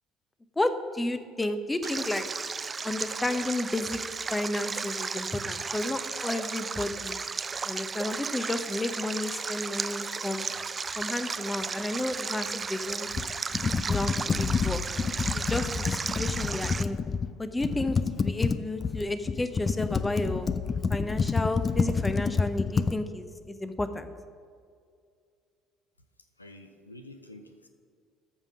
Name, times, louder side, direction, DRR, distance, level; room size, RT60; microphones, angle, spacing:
voice 1, 0.6-2.2 2.8-4.0 4.3-7.2 7.6-10.5 11.0-13.1 13.9-14.8 15.3-17.0 17.4-20.5 20.9-24.1, left 2 dB, 15° left, 10 dB, 0.8 m, -32 dB
Stream, 1.8-16.8, right 5 dB, 30° right, 0.4 m, -34 dB
Computer keyboard, 13.1-17.3 17.6-22.9, left 5 dB, 35° left, 0.5 m, -28 dB
voice 2, 26.4-27.7, left 1 dB, 90° left, 6 dB, 0.6 m, -48 dB
14.0 x 5.2 x 6.3 m, 2.2 s
figure-of-eight pair, 55°, 0 cm